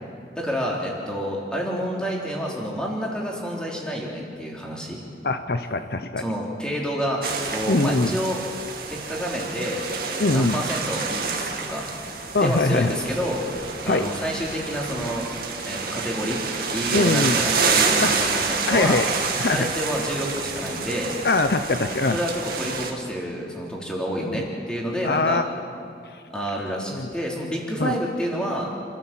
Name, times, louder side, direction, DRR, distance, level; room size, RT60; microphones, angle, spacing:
voice 1, 0.3-5.0 6.2-7.2 7.5-8.4 8.9-11.9 12.4-13.4 13.8-15.3 15.6-16.4 16.7-19.0 19.5-21.1 22.1-25.4 26.3-28.7, equal, 5° left, -2 dB, 3.3 m, -29 dB
voice 2, 5.2-6.2 7.7-8.2 10.2-10.6 12.3-12.9 13.9-14.1 16.9-17.4 18.0-18.1 18.7-19.1 19.4-19.7 21.2-22.2 24.2-24.5 25.0-25.4 26.9-27.1 27.8-27.9, left 2 dB, 60° left, 9 dB, 0.7 m, -22 dB
sound 1, 7.2-22.9, right 4 dB, 55° right, 2.2 m, -28 dB
28.5 x 13.0 x 7.5 m, 2.4 s
head